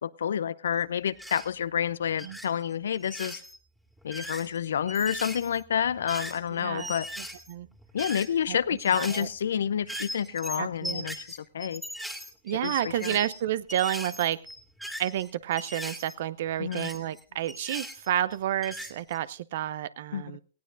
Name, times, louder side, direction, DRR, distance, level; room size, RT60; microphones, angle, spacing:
voice 1, 0.0-3.4 4.0-7.1 7.9-11.8 12.6-13.2 16.6-16.9 20.1-20.2, left 8 dB, 75° left, 18 dB, 0.6 m, -29 dB
sound 1, 1.2-1.5 2.1-2.5 2.9-3.6 4.0-6.5 6.8-8.5 8.8-9.4 9.8-13.4 13.7-16.1 16.7-18.4 18.6-19.2, equal, ahead, 2.1 m, -39 dB
voice 2, 6.5-6.9 7.2-7.7 8.5-9.3 10.5-11.1 12.4-14.4 15.0-20.4, right 12 dB, 60° right, 19 dB, 0.6 m, -30 dB
19.0 x 16.5 x 2.6 m, 0.42 s
hypercardioid pair, 125°, 0 cm